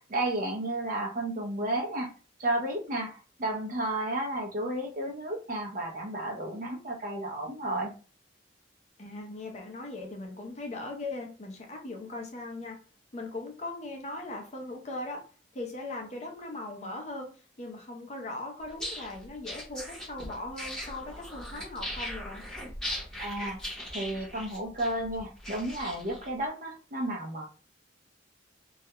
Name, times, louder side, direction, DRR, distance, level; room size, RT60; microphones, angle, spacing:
voice 1, 0.0-2.1 2.4-7.9 23.2-23.6 23.9-27.4, right 1 dB, 45° right, 1 dB, 0.5 m, -32 dB
voice 2, 9.0-12.8 13.1-15.2 15.5-17.3 17.6-22.4, left 2 dB, 35° left, 1 dB, 0.5 m, -39 dB
sound 1, 18.7-26.3, left 1 dB, 5° left, 0.8 m, -39 dB
2.3 x 2.1 x 2.8 m, 0.38 s
head